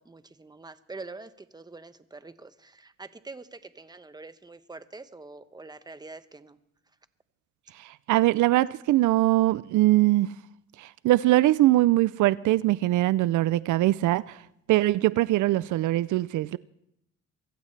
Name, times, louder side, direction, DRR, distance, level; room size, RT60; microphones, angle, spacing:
voice 1, 0.0-6.6, right 3 dB, 15° right, 1.0 m, -45 dB
voice 2, 7.8-10.3 10.8-14.4 14.7-16.6, right 16 dB, 75° right, 0.5 m, -22 dB
24.0 x 15.5 x 3.3 m
cardioid pair, 90°, 30 cm